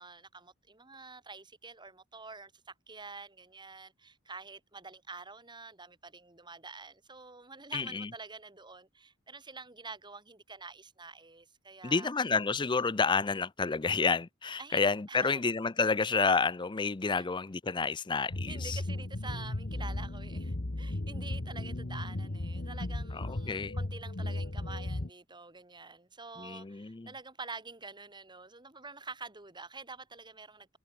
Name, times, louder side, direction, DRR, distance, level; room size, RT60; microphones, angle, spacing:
voice 1, 0.0-12.1 14.6-15.4 17.2-17.3 18.5-30.8, right 4 dB, 25° right, 4.7 m, -47 dB
voice 2, 7.7-8.1 11.8-18.8 23.1-23.8 26.4-27.1, left 4 dB, 25° left, 0.5 m, -30 dB
sound 1, 18.3-25.1, left 1 dB, 50° left, 1.3 m, -36 dB
head